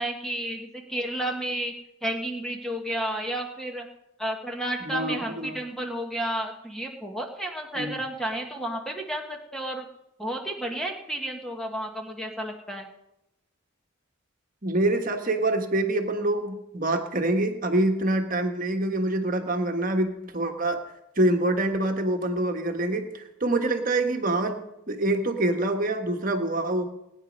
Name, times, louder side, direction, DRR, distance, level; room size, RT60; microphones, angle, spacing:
voice 1, 0.0-1.7 2.0-3.9 4.2-9.8 10.2-12.9, right 1 dB, ahead, 2 dB, 1.4 m, -31 dB
voice 2, 4.8-5.6 7.8-7.9 14.6-20.8 21.2-26.9, right 2 dB, 40° right, 4 dB, 1.5 m, -26 dB
19.5 x 9.7 x 5.3 m, 0.88 s
head